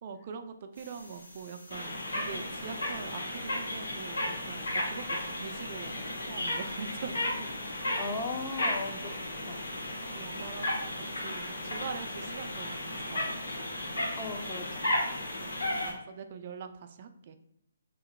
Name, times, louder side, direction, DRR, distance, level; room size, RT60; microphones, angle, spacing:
voice 1, 0.0-7.5 10.1-13.4 15.4-15.6 15.8-17.4, right 5 dB, 45° right, 8 dB, 0.3 m, -43 dB
sound 1, 0.8-15.9, left 1 dB, 75° left, 1.4 m, -34 dB
voice 2, 8.0-9.6 14.1-14.9, left 3 dB, 25° left, 3 dB, 0.5 m, -38 dB
2.9 x 2.1 x 4.0 m, 0.75 s
figure-of-eight pair, 140°, 0 cm